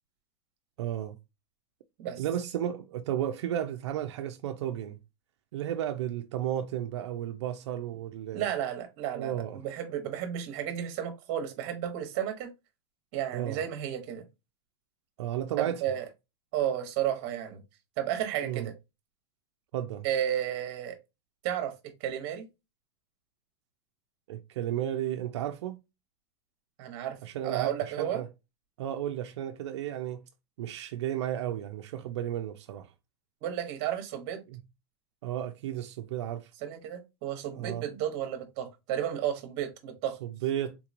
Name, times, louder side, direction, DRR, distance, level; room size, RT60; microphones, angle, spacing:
voice 1, 0.8-1.2 2.2-5.0 5.5-8.4 9.1-9.6 13.3-13.6 15.2-15.8 18.4-18.7 19.7-20.1 24.3-25.8 27.2-28.3 28.8-30.2 30.6-32.9 34.5-34.6 35.2-36.5 37.5-37.8 40.2-40.8, right 11 dB, 75° right, 0.5 m, -33 dB
voice 2, 8.3-12.5 13.1-14.2 15.6-16.0 16.5-17.6 18.0-18.7 20.0-21.0 21.4-21.7 22.0-22.5 26.8-27.2 27.4-28.2 33.4-34.4 36.6-40.2, right 10 dB, 40° right, 1.0 m, -32 dB
3.7 x 2.9 x 2.5 m
supercardioid pair, 165°, 15 cm